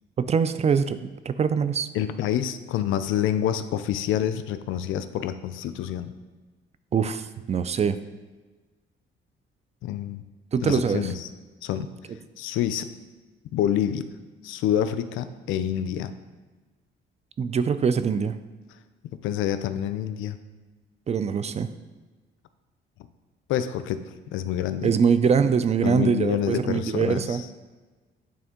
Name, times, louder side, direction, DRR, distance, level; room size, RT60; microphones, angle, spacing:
voice 1, 0.2-1.9 6.9-8.0 10.5-11.1 17.4-18.4 21.1-21.7 24.8-27.4, right 6 dB, 35° right, 12 dB, 0.4 m, -23 dB
voice 2, 1.9-6.1 9.8-10.2 10.6-11.3 11.6-11.9 12.4-12.9 13.5-14.1 14.4-16.1 19.2-20.4 23.5-24.9 25.8-27.5, left 10 dB, 85° left, 12 dB, 0.4 m, -27 dB
8.6 x 3.5 x 3.7 m, 1.3 s
cardioid pair, 90°, 20 cm